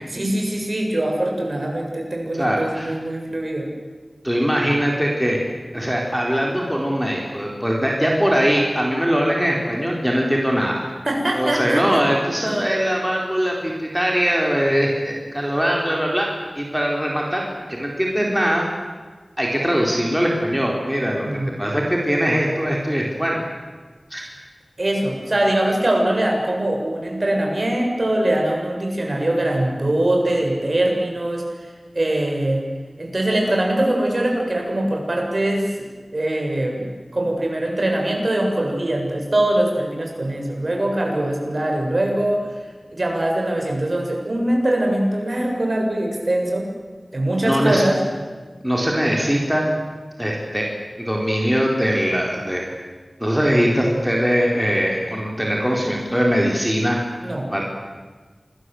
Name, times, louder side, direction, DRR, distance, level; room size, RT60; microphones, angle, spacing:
voice 1, 0.1-3.7 11.0-12.0 12.5-12.6 21.2-21.7 24.8-31.4 31.9-32.6 33.0-35.8 36.1-42.6 42.9-46.7 47.1-48.0 57.2-57.5, right 1 dB, 55° right, 1 dB, 7.2 m, -22 dB
voice 2, 2.3-2.9 4.2-5.4 5.7-10.9 11.3-16.3 16.5-18.6 19.4-21.3 21.6-23.4 24.1-24.2 47.4-47.9 48.6-49.7 50.2-50.6 51.0-52.6 53.2-57.0 57.5-57.6, equal, 5° right, -2 dB, 4.5 m, -21 dB
28.0 x 22.0 x 8.0 m, 1.4 s
wide cardioid pair, 60°, 0 cm